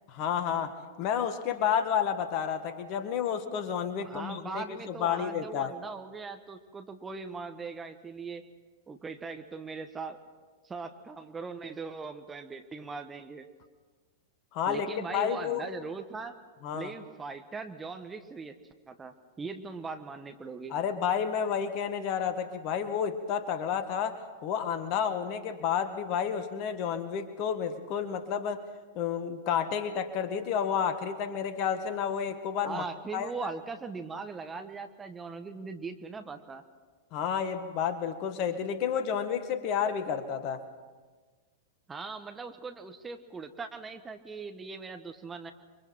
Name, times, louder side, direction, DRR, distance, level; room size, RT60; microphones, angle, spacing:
voice 1, 0.1-5.7 14.5-14.9 15.1-15.7 16.6-16.9 20.7-28.6 29.0-32.8 33.1-33.3 37.1-40.6, left 8 dB, 40° left, 9 dB, 1.8 m, -30 dB
voice 2, 4.0-8.4 8.9-10.2 10.6-13.5 14.6-16.3 16.7-18.6 18.9-20.7 32.6-36.6 41.9-45.5, right 4 dB, 15° right, 7 dB, 1.4 m, -40 dB
29.5 x 23.5 x 4.5 m, 1.4 s
figure-of-eight pair, 95°, 0 cm